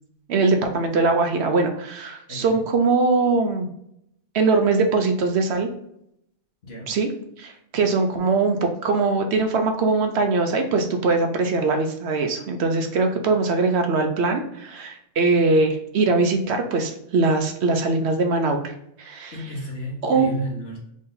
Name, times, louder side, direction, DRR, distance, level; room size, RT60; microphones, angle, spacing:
voice 1, 0.3-3.7 4.3-5.7 6.9-7.1 7.4-18.6 19.0-19.3 20.0-20.3, right 3 dB, 65° right, 5 dB, 0.9 m, -21 dB
voice 2, 2.3-2.6 6.6-6.9 19.3-20.8, equal, 60° left, -4 dB, 1.4 m, -32 dB
3.8 x 2.7 x 3.8 m, 0.74 s
omnidirectional pair, 1.2 m